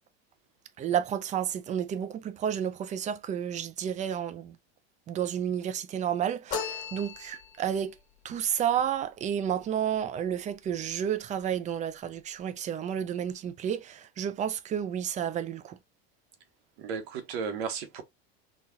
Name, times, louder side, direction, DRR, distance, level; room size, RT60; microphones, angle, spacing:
voice 1, 0.8-4.6 5.1-7.9 8.2-15.8, right 9 dB, 25° right, 0.4 m, -31 dB
sound 1, 6.5-7.8, left 6 dB, 25° left, 1.4 m, -36 dB
voice 2, 16.8-18.0, right 6 dB, 75° right, 1.0 m, -34 dB
3.9 x 2.3 x 2.7 m
supercardioid pair, 125°, 31 cm